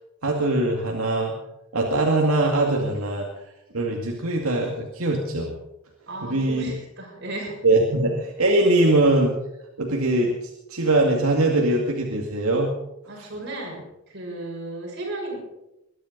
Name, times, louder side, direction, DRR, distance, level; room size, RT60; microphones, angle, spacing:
voice 1, 0.2-1.3 1.7-3.3 3.7-5.5 6.2-6.7 7.6-9.3 9.8-10.3 10.7-12.8 13.2-13.3, right 2 dB, 85° right, -1 dB, 2.3 m, -22 dB
voice 2, 6.1-7.6 13.1-15.4, right 2 dB, 55° right, -2 dB, 6.5 m, -34 dB
21.5 x 11.0 x 5.4 m, 0.87 s
head